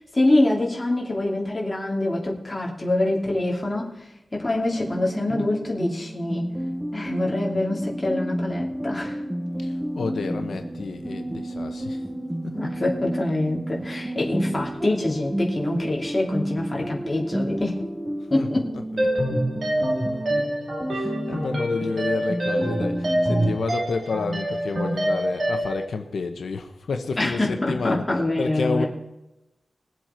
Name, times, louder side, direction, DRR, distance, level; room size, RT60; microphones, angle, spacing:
voice 1, 0.1-3.9 4.3-6.5 6.9-9.2 12.6-17.8 18.3-18.7 27.2-28.9, left 1 dB, 20° left, -2 dB, 2.7 m, -25 dB
sound 1, 4.7-23.6, right 1 dB, 10° right, 0.8 m, -31 dB
voice 2, 9.6-12.0 12.4-12.5 18.3-19.1 19.9-20.0 20.9-28.8, left 4 dB, 90° left, 6 dB, 0.9 m, -30 dB
sound 2, 19.0-25.8, right 1 dB, 45° right, 2.7 m, -26 dB
21.0 x 7.7 x 4.4 m, 0.94 s
wide cardioid pair, 140°, 0 cm